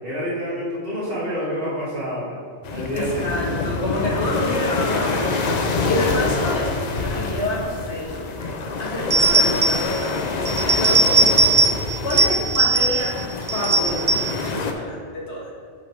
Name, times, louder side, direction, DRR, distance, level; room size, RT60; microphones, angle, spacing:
voice 1, 0.0-2.4 2.7-3.3 12.1-12.4, equal, 55° right, -7 dB, 2.0 m, -28 dB
sound 1, 2.6-14.7, left 3 dB, 50° left, 0.6 m, -26 dB
voice 2, 2.9-11.7 12.0-13.2 13.5-14.1 14.4-15.5, left 1 dB, 75° left, -4 dB, 1.8 m, -28 dB
sound 2, 9.1-10.0 10.5-11.8 12.1-13.1 13.5-14.4, right 3 dB, 40° right, 0.4 m, -19 dB
8.2 x 4.2 x 4.5 m, 2.1 s
omnidirectional pair, 1.2 m